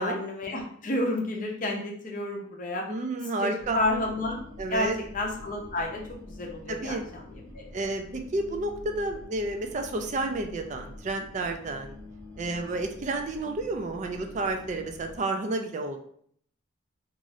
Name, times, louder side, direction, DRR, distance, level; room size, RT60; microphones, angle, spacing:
voice 1, 0.0-2.9 3.3-4.4 4.7-7.6, left 1 dB, 40° left, 0 dB, 0.6 m, -31 dB
voice 2, 2.9-3.8 4.6-5.0 6.7-7.0 7.7-12.0 12.4-16.0, right 2 dB, 35° right, 4 dB, 0.3 m, -31 dB
sound 1, 3.6-15.2, left 1 dB, 80° right, 0.7 m, -46 dB
2.6 x 2.5 x 3.0 m, 0.62 s
head